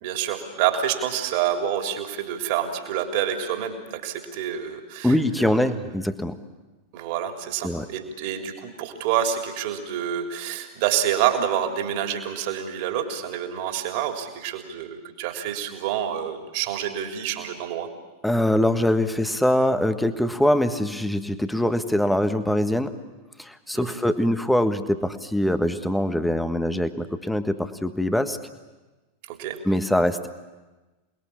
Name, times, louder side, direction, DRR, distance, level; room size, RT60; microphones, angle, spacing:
voice 1, 0.0-5.2 6.9-17.9 23.9-24.0 29.3-29.6, right 10 dB, 50° right, 4 dB, 3.5 m, -27 dB
voice 2, 5.0-6.3 7.6-7.8 18.2-22.9 23.4-28.4 29.6-30.3, left 1 dB, 5° left, 10 dB, 1.6 m, -23 dB
28.5 x 21.0 x 8.6 m, 1.2 s
figure-of-eight pair, 90°, 0 cm